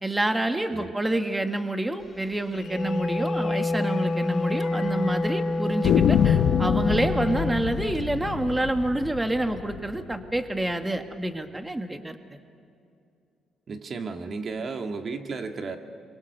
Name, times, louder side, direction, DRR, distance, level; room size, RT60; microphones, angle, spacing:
voice 1, 0.0-12.4, right 1 dB, 10° right, 7 dB, 1.5 m, -28 dB
Wind instrument woodwind instrument, 2.5-7.6, left 2 dB, 35° left, 2.1 m, -28 dB
sound 1, 3.0-3.2 3.5-3.6 3.9-4.0 4.6-5.1 5.8-10.6, left 9 dB, 75° left, 0.9 m, -26 dB
voice 2, 13.7-15.8, right 4 dB, 50° right, 5 dB, 1.9 m, -33 dB
27.5 x 23.5 x 6.8 m, 2.5 s
cardioid pair, 90°, 0 cm